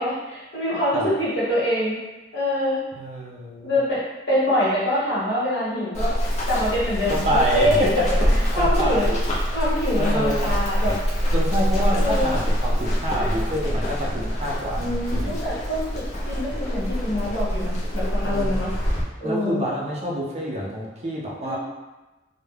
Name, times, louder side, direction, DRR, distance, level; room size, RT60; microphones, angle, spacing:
voice 1, 0.0-2.0 2.3-2.8 3.6-4.0 4.3-6.2 6.5-7.8 8.5-9.1 9.5-11.0 11.9-12.4 13.2-13.3 14.8-18.7 19.2-19.6 21.4-21.6, left 1 dB, 65° left, -9 dB, 1.1 m, -25 dB
voice 2, 2.9-3.7 7.1-9.2 10.0-10.5 11.3-15.3 18.2-18.5 19.2-21.6, equal, 35° right, -3 dB, 0.4 m, -27 dB
Run, 5.9-19.0, equal, 40° left, 0.5 m, -24 dB
2.2 x 2.0 x 3.1 m, 1.1 s
head